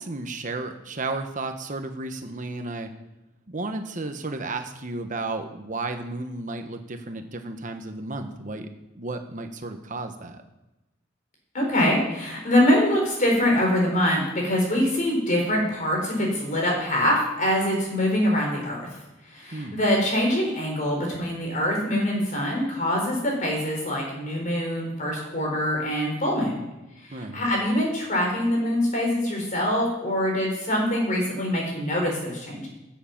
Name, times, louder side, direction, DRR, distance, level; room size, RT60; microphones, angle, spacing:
voice 1, 0.0-2.9 3.5-8.7 8.9-10.4 19.5-19.8 27.1-27.5, right 2 dB, 40° right, 6 dB, 1.0 m, -33 dB
voice 2, 11.5-19.0 19.2-26.6 27.0-32.7, left 1 dB, 40° left, -1 dB, 4.7 m, -24 dB
15.5 x 7.4 x 5.9 m, 1.0 s
head